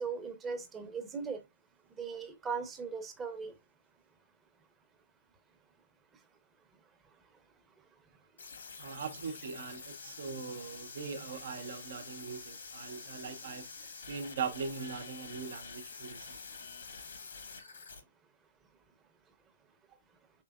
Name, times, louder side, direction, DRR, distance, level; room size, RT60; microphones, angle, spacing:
voice 1, 0.0-1.4 2.0-3.5, right 5 dB, 15° right, 0.8 m, -38 dB
sound 1, 8.4-18.0, left 5 dB, 70° left, 1.3 m, -47 dB
voice 2, 8.8-16.4, right 5 dB, 60° right, 0.7 m, -41 dB
4.5 x 3.3 x 2.3 m
figure-of-eight pair, 125°, 0 cm